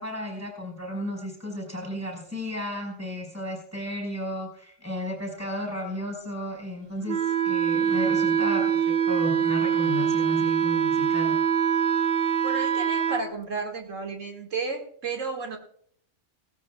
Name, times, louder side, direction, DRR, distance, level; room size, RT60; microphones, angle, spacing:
voice 1, 0.0-7.2 7.4-11.3, left 1 dB, 10° right, 1 dB, 4.8 m, -33 dB
Wind instrument woodwind instrument, 7.1-13.2, right 8 dB, 55° right, 0.9 m, -24 dB
voice 2, 12.4-15.6, right 4 dB, 80° right, 2 dB, 2.4 m, -32 dB
18.0 x 17.0 x 2.3 m, 0.66 s
omnidirectional pair, 1.3 m